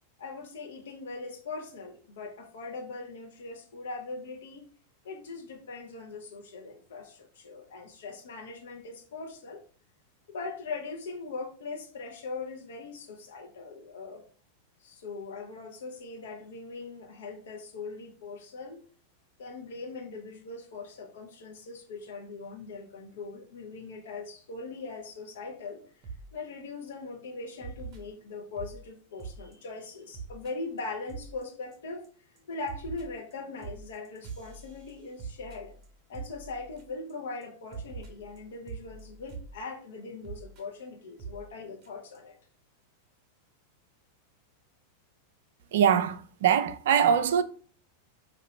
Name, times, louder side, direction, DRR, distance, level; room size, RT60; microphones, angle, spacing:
voice 1, 0.2-4.6 5.0-9.6 10.3-14.2 14.8-18.8 19.4-25.8 26.3-32.0 32.5-35.7 36.1-42.4, left 3 dB, 60° left, 1.0 m, -40 dB
sound 1, 26.0-26.3 26.7-26.9 27.6-28.8 29.2-29.5 29.8-29.9 30.1-30.5 30.8-30.9 31.1-31.4 31.7-32.1 32.4-37.1 37.4-37.5 37.7-39.5 40.2-40.6 41.2-41.4 41.8-41.9 42.1-42.2, right 5 dB, 35° right, 0.9 m, -43 dB
voice 2, 45.7-47.4, right 8 dB, 55° right, 0.4 m, -23 dB
4.7 x 2.7 x 3.1 m
figure-of-eight pair, 90°, 0 cm